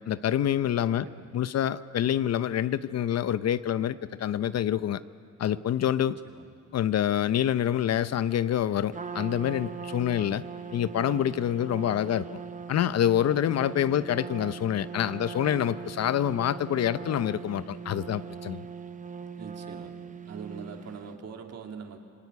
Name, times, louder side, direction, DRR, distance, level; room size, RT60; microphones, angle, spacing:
voice 1, 0.1-1.1 1.3-5.0 5.4-6.2 6.7-10.4 10.7-12.3 12.7-18.6, left 10 dB, 55° left, 14 dB, 0.7 m, -26 dB
voice 2, 1.0-1.3 6.2-6.4 13.9-14.1 15.1-15.3 19.4-19.9 20.3-22.0, right 6 dB, 55° right, 3 dB, 2.8 m, -43 dB
Trumpet, 8.9-21.1, right 6 dB, 25° right, 0.9 m, -40 dB
26.5 x 19.0 x 9.7 m, 2.5 s
cardioid pair, 90°, 30 cm